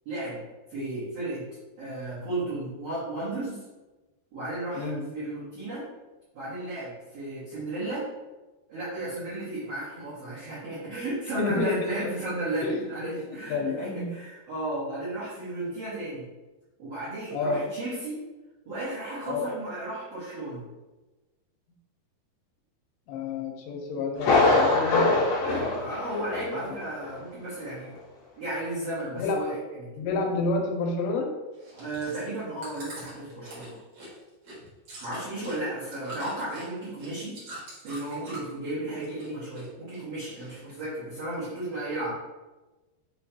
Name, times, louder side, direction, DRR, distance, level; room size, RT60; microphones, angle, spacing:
voice 1, 0.0-0.4 0.7-1.4 1.8-3.6 4.3-5.9 6.3-8.1 8.7-16.2 16.8-18.2 18.6-20.6 25.4-27.9 28.4-29.9 31.7-33.8 35.0-37.4 37.8-42.1, right 2 dB, 75° right, -12 dB, 1.3 m, -34 dB
voice 2, 4.7-5.0 11.4-12.1 12.6-12.9 13.5-14.1 17.3-17.7 19.2-19.5 23.1-25.0 26.5-26.6 29.1-29.4 30.0-31.3, left 3 dB, 85° left, 2 dB, 2.9 m, -29 dB
Thunder, 24.2-26.8 27.0-27.1 27.7-27.8, left 3 dB, 70° left, 2.8 m, -23 dB
Chewing mastication, 31.5-38.6 38.9-39.7 39.9-40.8 41.3-41.4, right 1 dB, 60° right, 1.7 m, -44 dB
6.6 x 2.2 x 2.8 m, 1.1 s
omnidirectional pair, 4.9 m